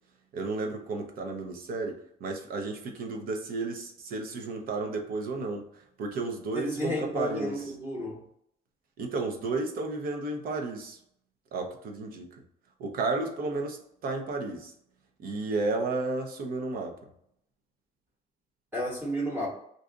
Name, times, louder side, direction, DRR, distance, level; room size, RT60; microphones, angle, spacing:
voice 1, 0.3-1.9 2.2-5.7 6.0-7.5 9.0-11.0 11.5-12.3 12.8-14.7 15.2-16.9, right 3 dB, 60° right, 3 dB, 0.7 m, -32 dB
voice 2, 6.5-8.2 18.7-19.5, equal, 10° right, -4 dB, 1.0 m, -32 dB
2.6 x 2.3 x 3.7 m, 0.71 s
cardioid pair, 110°, 17 cm